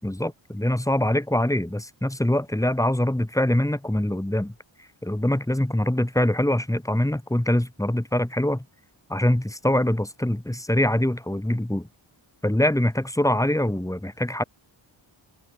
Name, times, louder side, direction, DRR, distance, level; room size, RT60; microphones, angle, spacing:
voice 1, 0.0-4.5 5.0-8.6 9.1-11.9 12.4-14.4, left 1 dB, 5° left, 5.7 m, -24 dB
open air
wide cardioid pair, 140°, 46 cm